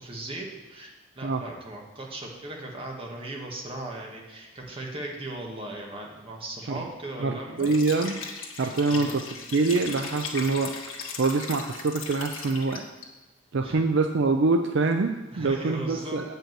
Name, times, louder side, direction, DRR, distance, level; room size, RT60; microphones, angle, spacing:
voice 1, 0.0-7.7 8.8-9.2 13.6-13.8 15.3-16.2, right 1 dB, 30° right, -1 dB, 1.7 m, -38 dB
voice 2, 7.2-8.2 8.6-9.2 9.5-10.7 11.2-12.9 13.5-16.2, right 3 dB, 65° right, 6 dB, 0.5 m, -25 dB
Liquid, 7.6-13.0, left 5 dB, 90° left, 1.5 m, -38 dB
8.7 x 5.5 x 7.5 m, 1.1 s
head